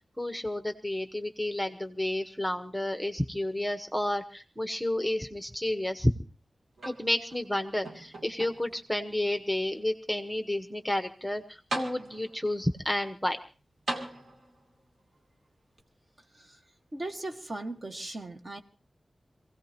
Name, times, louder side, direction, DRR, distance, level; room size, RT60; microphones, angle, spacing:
voice 1, 0.2-6.1 6.8-13.4, left 1 dB, ahead, 6 dB, 1.1 m, -31 dB
sound 1, 6.8-7.5 7.9-8.9 9.6-9.7 11.2-11.3 11.7-12.5 13.9-14.7 15.8-15.9, right 1 dB, 60° right, 2.8 m, -38 dB
voice 2, 16.9-18.6, right 2 dB, 35° right, 5 dB, 1.7 m, -38 dB
27.0 x 17.0 x 3.0 m, 0.36 s
wide cardioid pair, 120°, 0 cm